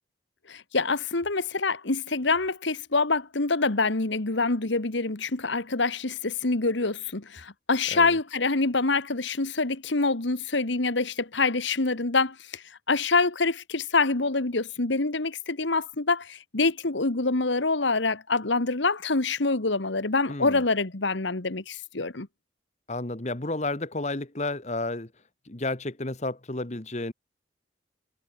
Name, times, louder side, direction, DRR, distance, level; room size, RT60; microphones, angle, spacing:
voice 1, 0.5-22.3, left 3 dB, 70° left, 1.6 m, -26 dB
voice 2, 20.3-20.6 22.9-25.1 25.5-27.1, left 2 dB, 35° left, 1.3 m, -31 dB
head